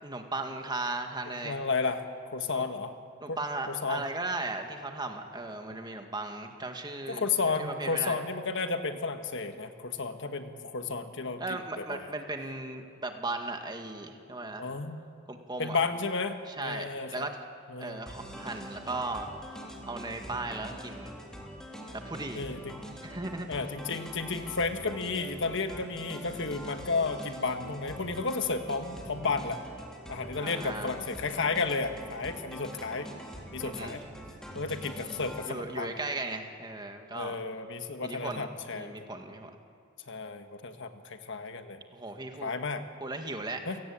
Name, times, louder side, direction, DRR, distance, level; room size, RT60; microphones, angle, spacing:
voice 1, 0.0-1.6 2.5-2.6 3.2-7.2 7.6-8.2 11.4-14.7 15.3-15.8 16.5-17.3 17.8-19.3 19.9-21.1 22.1-22.4 23.0-23.5 30.4-30.9 33.6-34.0 35.5-37.5 38.0-39.5 41.9-42.5 43.0-43.8, right 2 dB, 20° right, 4 dB, 2.0 m, -37 dB
voice 2, 1.4-2.0 2.3-2.9 3.3-3.4 3.7-4.0 7.1-11.4 11.8-12.1 14.6-15.0 15.6-17.3 17.7-18.1 22.3-22.8 23.5-29.6 30.1-33.1 33.5-34.0 34.5-35.9 37.1-38.9 40.1-41.8 42.4-42.8 43.7-43.8, left 4 dB, 60° left, 7 dB, 1.5 m, -32 dB
sound 1, 18.1-35.5, equal, 5° left, 3.4 m, -44 dB
29.0 x 18.0 x 8.7 m, 2.3 s
head